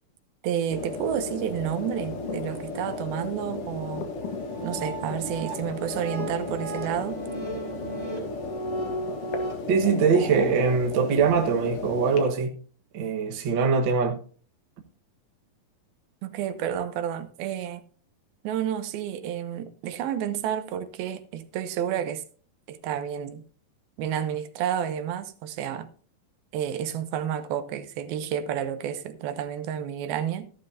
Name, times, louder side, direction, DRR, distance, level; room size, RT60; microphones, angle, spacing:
voice 1, 0.4-4.1 4.6-7.2 16.2-17.8 18.4-22.2 22.7-23.4 24.0-25.9 26.5-30.5, right 9 dB, 85° right, 2.7 m, -30 dB
sound 1, 0.7-12.3, left 3 dB, 55° left, 1.7 m, -34 dB
sound 2, 4.2-9.5, right 1 dB, 35° right, 4.9 m, -36 dB
voice 2, 9.7-12.5 12.9-14.2, right 5 dB, 55° right, 1.3 m, -22 dB
14.0 x 12.0 x 2.7 m
omnidirectional pair, 4.3 m